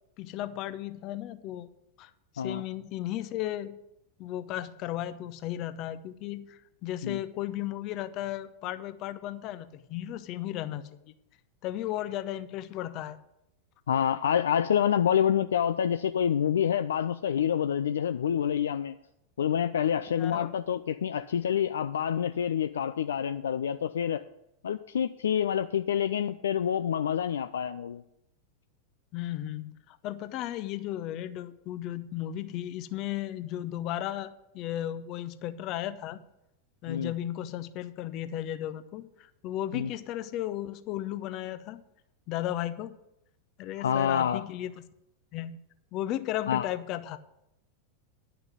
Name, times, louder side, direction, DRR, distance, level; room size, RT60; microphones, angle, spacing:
voice 1, 0.2-1.7 2.0-3.8 4.2-11.1 11.6-13.2 20.2-20.6 29.1-36.2 36.8-41.8 42.3-42.9 43.6-44.7 45.3-45.6 45.9-47.2, left 13 dB, 40° left, 12 dB, 0.7 m, -35 dB
voice 2, 13.9-19.0 19.4-24.2 24.6-28.0 36.9-37.1 39.7-39.9 43.8-44.4 46.5-46.7, left 9 dB, 65° left, 10 dB, 0.3 m, -27 dB
10.5 x 5.9 x 8.0 m, 0.84 s
figure-of-eight pair, 90°, 0 cm